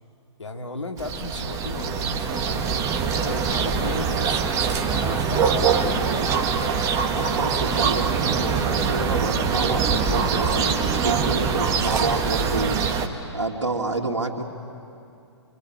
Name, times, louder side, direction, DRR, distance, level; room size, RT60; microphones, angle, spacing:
voice 1, 0.4-4.5 4.8-7.0, left 2 dB, 85° left, 5 dB, 2.5 m, -35 dB
sound 1, 1.0-13.1, right 6 dB, 20° right, 1.7 m, -23 dB
voice 2, 7.1-12.8 13.3-14.4, right 2 dB, 90° right, 1 dB, 2.9 m, -28 dB
26.0 x 25.0 x 8.8 m, 2.6 s
hypercardioid pair, 130°, 15 cm